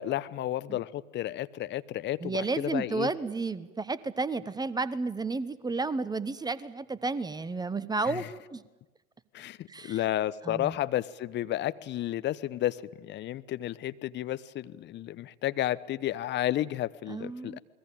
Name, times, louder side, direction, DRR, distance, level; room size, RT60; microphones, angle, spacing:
voice 1, 0.0-3.1 8.1-8.3 9.3-17.6, left 13 dB, 25° left, 15 dB, 0.9 m, -32 dB
voice 2, 2.2-8.2 8.5-8.6 9.7-10.0 10.4-10.8 17.1-17.6, right 3 dB, 10° right, 17 dB, 1.0 m, -32 dB
28.5 x 21.0 x 8.9 m, 1.1 s
figure-of-eight pair, 95°, 42 cm